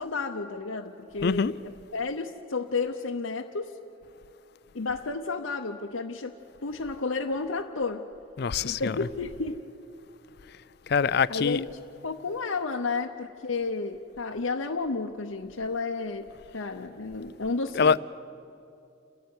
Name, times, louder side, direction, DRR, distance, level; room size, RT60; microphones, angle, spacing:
voice 1, 0.0-3.7 4.7-6.4 6.6-8.1 8.6-9.6 11.3-18.0, left 4 dB, 85° left, 0.8 m, -32 dB
voice 2, 1.2-1.5 8.4-9.1 10.9-11.6 17.7-18.0, left 5 dB, 50° left, 0.4 m, -24 dB
29.5 x 11.0 x 9.5 m
head